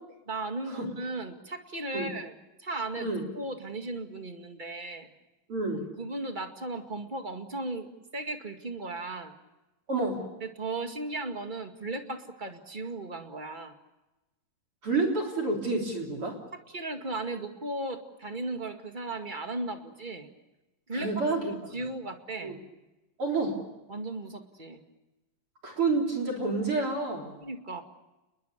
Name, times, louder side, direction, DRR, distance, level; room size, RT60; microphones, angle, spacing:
voice 1, 0.3-2.3 2.6-5.1 6.0-9.3 10.4-13.7 16.5-20.3 20.9-22.6 23.9-24.8 27.4-27.8, right 2 dB, 20° right, 5 dB, 1.4 m, -36 dB
voice 2, 5.5-5.9 9.9-10.3 14.8-16.4 20.9-21.8 22.4-22.6 23.2-23.6 25.6-27.4, right 3 dB, 40° right, 1 dB, 4.3 m, -29 dB
29.5 x 21.5 x 6.7 m, 1.0 s
omnidirectional pair, 3.9 m